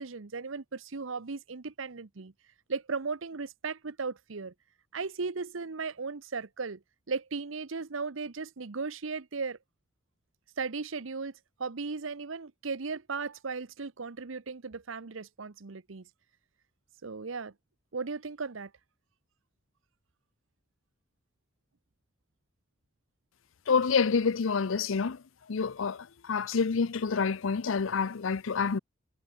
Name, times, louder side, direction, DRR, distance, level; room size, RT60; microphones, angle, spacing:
voice 1, 0.0-2.3 2.7-4.5 4.9-6.8 7.1-9.6 10.6-11.3 11.6-16.1 17.0-17.5 17.9-18.7, right 4 dB, 80° right, 0.9 m, -36 dB
voice 2, 23.7-25.2 25.5-28.8, left 5 dB, 80° left, 0.6 m, -28 dB
head